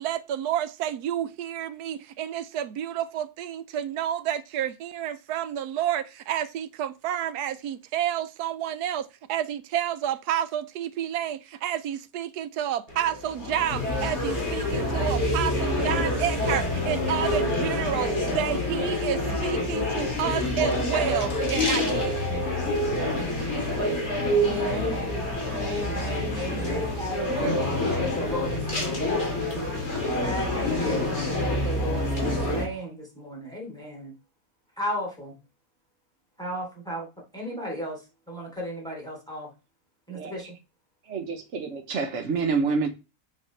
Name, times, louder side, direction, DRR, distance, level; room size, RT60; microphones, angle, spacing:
voice 1, 0.0-22.2, right 10 dB, 80° right, 1.2 m, -30 dB
sound 1, 12.9-32.6, left 1 dB, 45° left, 2.9 m, -27 dB
voice 2, 24.4-25.1 25.6-29.1 30.2-34.1 34.8-35.4 36.4-37.1 37.3-39.5 40.1-40.5, left 1 dB, ahead, 3.0 m, -35 dB
voice 3, 40.1-40.5 41.0-42.9, right 4 dB, 55° right, 1.1 m, -28 dB
7.7 x 6.4 x 3.2 m
omnidirectional pair, 1.7 m